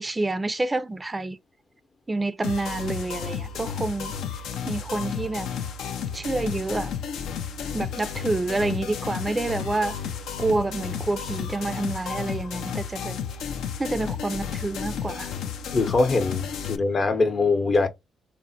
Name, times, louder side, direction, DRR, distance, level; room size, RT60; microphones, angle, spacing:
voice 1, 0.0-1.4 2.1-4.1 4.6-5.5 6.1-6.9 7.7-9.9 10.4-13.1 13.8-15.3, right 2 dB, 25° right, 0.4 m, -28 dB
sound 1, 2.4-16.8, left 7 dB, 75° left, 0.4 m, -32 dB
voice 2, 15.7-17.9, left 3 dB, 45° left, 0.7 m, -22 dB
3.6 x 2.0 x 2.7 m
hypercardioid pair, 50°, 0 cm